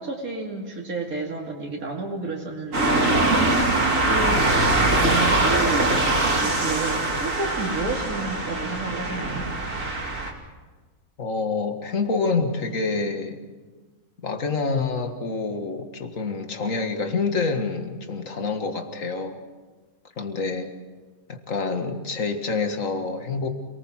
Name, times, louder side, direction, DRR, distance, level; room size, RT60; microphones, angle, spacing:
voice 1, 0.0-9.5, right 3 dB, 90° right, -2 dB, 2.8 m, -31 dB
sound 1, 2.7-10.3, right 2 dB, 65° right, 3.0 m, -22 dB
voice 2, 11.2-13.4 14.2-19.4 20.2-20.7 21.3-23.5, left 4 dB, 65° left, 6 dB, 2.1 m, -27 dB
27.5 x 19.0 x 6.2 m, 1.3 s
omnidirectional pair, 1.5 m